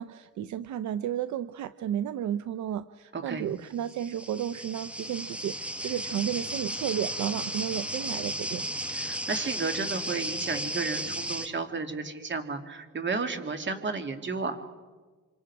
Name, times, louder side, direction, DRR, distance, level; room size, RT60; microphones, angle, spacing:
voice 1, 0.0-8.6, right 10 dB, 75° right, 13 dB, 0.7 m, -33 dB
voice 2, 3.1-3.5 8.9-14.6, right 4 dB, 40° right, 6 dB, 2.6 m, -33 dB
sound 1, 3.8-11.5, right 1 dB, 5° right, 1.2 m, -34 dB
27.0 x 26.0 x 4.9 m, 1.4 s
cardioid pair, 90°, 30 cm